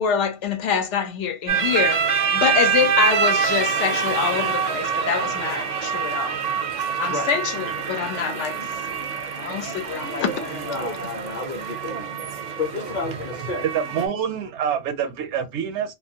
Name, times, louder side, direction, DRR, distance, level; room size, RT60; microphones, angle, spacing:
voice 1, 0.0-6.4 7.0-8.6 9.4-10.8, left 7 dB, 75° left, 0.9 m, -25 dB
sound 1, 1.5-14.1, right 6 dB, 55° right, 0.5 m, -25 dB
voice 2, 10.5-12.2 12.6-13.6, left 4 dB, 45° left, 0.8 m, -31 dB
voice 3, 13.6-15.9, right 8 dB, 75° right, 0.9 m, -26 dB
2.5 x 2.4 x 2.7 m
omnidirectional pair, 1.2 m